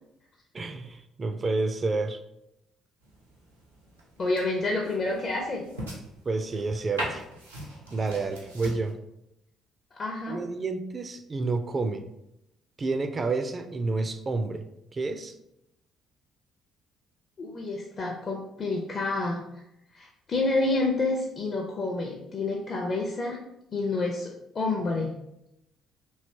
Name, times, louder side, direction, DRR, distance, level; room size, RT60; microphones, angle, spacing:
voice 1, 0.5-2.2 6.3-7.2 7.9-8.9 10.3-12.0 12.8-14.6 14.9-15.3, right 3 dB, 35° right, 8 dB, 0.3 m, -29 dB
sound 1, 3.0-8.9, right 1 dB, 90° right, 0.6 m, -41 dB
voice 2, 4.2-5.6 9.9-10.4 17.4-19.4 19.9-23.4 23.7-25.1, left 2 dB, 40° left, -1 dB, 0.5 m, -29 dB
3.2 x 2.8 x 2.7 m, 0.84 s
figure-of-eight pair, 45°, 0 cm